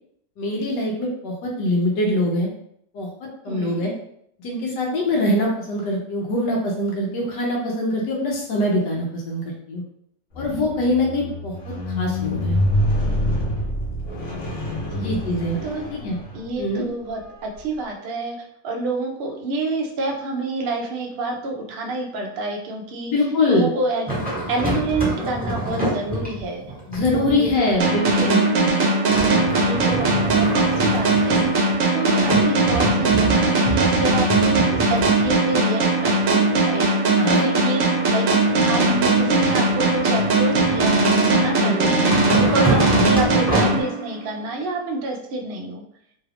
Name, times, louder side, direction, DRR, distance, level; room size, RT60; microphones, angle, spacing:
voice 1, 0.4-2.5 2.9-3.1 3.4-3.9 4.4-9.8 10.4-12.6 15.0-15.6 15.9-16.2 16.6-16.8 23.1-23.7 26.9-28.4 37.1-37.4 41.6-41.9 42.9-43.1, left 1 dB, 85° left, -1 dB, 1.3 m, -23 dB
voice 2, 3.5-3.9 14.8-15.2 15.6-15.8 16.3-18.4 18.6-23.1 23.5-24.1 24.5-26.6 27.1-27.8 28.4-28.8 29.6-30.5 30.8-31.5 31.9-37.9 38.1-42.0 42.4-45.8, right 2 dB, 80° right, 0 dB, 0.5 m, -28 dB
Squeak, 10.3-16.7 17.4-17.6, left 1 dB, 55° left, 1.1 m, -26 dB
sound 1, 24.1-28.5 29.1-31.8 32.2-36.8 38.5-41.6 42.1-43.8, right 1 dB, 5° right, 0.8 m, -27 dB
sound 2, 27.8-44.4, right 2 dB, 60° right, 1.0 m, -19 dB
3.2 x 2.4 x 3.3 m, 0.70 s
omnidirectional pair, 1.8 m